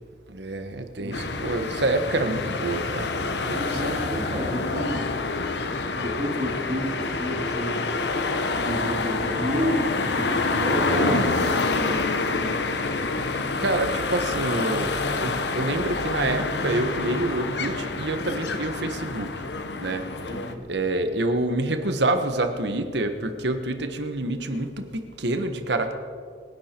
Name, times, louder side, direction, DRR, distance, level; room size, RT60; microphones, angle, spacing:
voice 1, 0.3-3.9 10.9-11.6 13.6-19.4 19.8-20.0 20.7-25.9, right 2 dB, 70° right, 8 dB, 1.3 m, -27 dB
sound 1, 1.1-20.5, left 3 dB, 70° left, 1.0 m, -27 dB
voice 2, 3.5-5.1 6.0-7.8 8.6-11.5 12.0-12.5 20.3-20.7, equal, 35° right, -3 dB, 2.5 m, -30 dB
26.0 x 11.0 x 4.5 m, 2.2 s
head